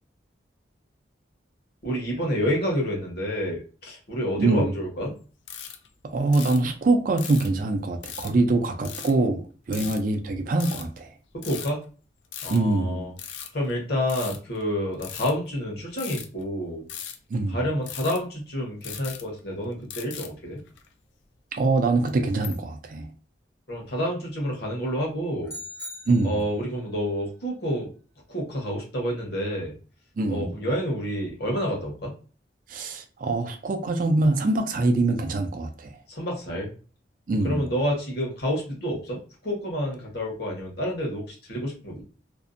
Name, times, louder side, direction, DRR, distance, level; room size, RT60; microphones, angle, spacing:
voice 1, 1.8-5.1 9.7-9.9 11.3-11.8 12.4-13.1 13.5-16.8 17.5-20.6 23.7-25.6 26.2-27.9 28.3-29.7 30.3-32.1 36.1-36.7 37.4-42.0, equal, 60° left, 0.9 m, -29 dB
sound 1, 5.5-5.9 6.3-6.7 7.2-7.6 8.0-8.4 8.8-9.1 9.7-10.0 10.6-11.0 11.4-11.8 12.2-12.8 13.2-14.7 15.0-15.3 16.0-16.4 16.9-17.3 17.9-18.3 18.8-19.6 19.9-20.3 20.7-20.9 21.8-22.5, left 9 dB, 80° left, 0.4 m, -38 dB
voice 2, 6.0-11.1 12.5-13.1 17.3-17.7 21.5-23.1 26.1-26.4 30.2-30.5 32.7-36.0 37.3-37.7, right 2 dB, 45° right, 0.4 m, -24 dB
sound 2, 25.5-26.8, left 1 dB, 15° left, 0.5 m, -40 dB
2.6 x 2.1 x 2.5 m
head